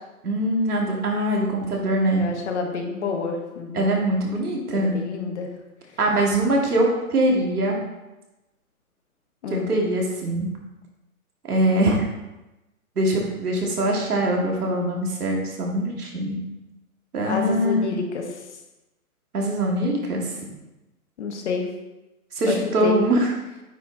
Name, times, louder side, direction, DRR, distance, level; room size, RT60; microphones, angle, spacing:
voice 1, 0.2-2.3 3.7-5.0 6.0-7.8 9.5-10.5 11.5-12.1 13.0-16.4 17.1-17.9 19.3-20.3 22.4-23.3, right 1 dB, 80° right, -1 dB, 2.4 m, -22 dB
voice 2, 2.1-3.9 4.7-5.5 9.4-9.7 17.3-18.2 21.2-21.6 22.5-22.6 22.8-23.0, left 5 dB, 50° left, 3 dB, 1.5 m, -28 dB
9.1 x 4.4 x 4.1 m, 1.0 s
hypercardioid pair, 150°, 44 cm